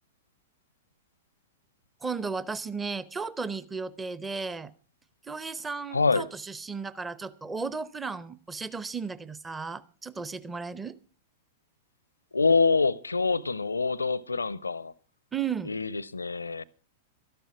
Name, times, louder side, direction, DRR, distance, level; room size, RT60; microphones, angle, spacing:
voice 1, 2.0-4.7 5.3-11.0 15.3-15.7, right 5 dB, 15° right, 0.8 m, -34 dB
voice 2, 5.9-6.3 12.3-14.9 15.7-16.6, left 4 dB, 80° left, 0.6 m, -25 dB
13.0 x 11.5 x 5.9 m
figure-of-eight pair, 100°, 0 cm